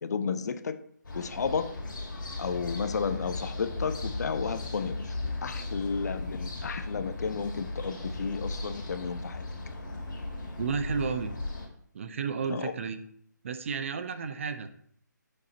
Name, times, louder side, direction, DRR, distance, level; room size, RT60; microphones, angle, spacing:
voice 1, 0.0-0.8 1.1-1.7 2.4-5.1 5.4-9.5 12.5-12.7, left 5 dB, 60° left, 11 dB, 0.5 m, -32 dB
sound 1, 1.0-11.7, left 2 dB, 80° left, 2.0 m, -36 dB
voice 2, 10.6-11.3 11.9-13.0 13.4-14.7, right 5 dB, 40° right, 10 dB, 0.5 m, -32 dB
6.5 x 3.8 x 4.3 m, 0.64 s
hypercardioid pair, 160°, 10 cm